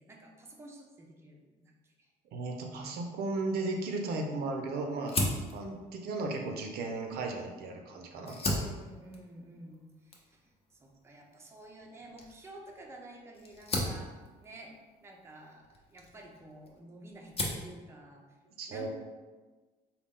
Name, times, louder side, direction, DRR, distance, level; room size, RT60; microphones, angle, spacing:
voice 1, 0.0-2.1 8.5-14.8 15.0-18.3 18.7-18.9, right 1 dB, 15° right, 0 dB, 0.5 m, -51 dB
voice 2, 2.3-8.4 18.6-18.9, right 3 dB, 70° right, 3 dB, 0.6 m, -35 dB
Fire, 5.0-7.7 8.1-16.8 17.1-17.7, left 1 dB, 35° left, 0.7 m, -37 dB
3.9 x 2.2 x 3.6 m, 1.3 s
cardioid pair, 110°, 17 cm